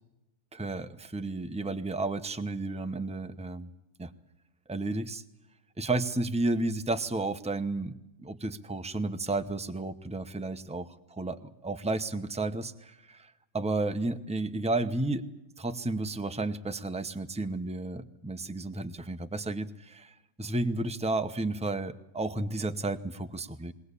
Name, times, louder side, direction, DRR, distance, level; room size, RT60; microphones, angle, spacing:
voice 1, 0.5-3.7 4.0-4.1 4.7-5.2 5.8-7.9 8.2-15.2 15.6-23.7, right 2 dB, 5° right, 8 dB, 0.6 m, -32 dB
22.0 x 18.0 x 8.3 m, 0.92 s
omnidirectional pair, 1.6 m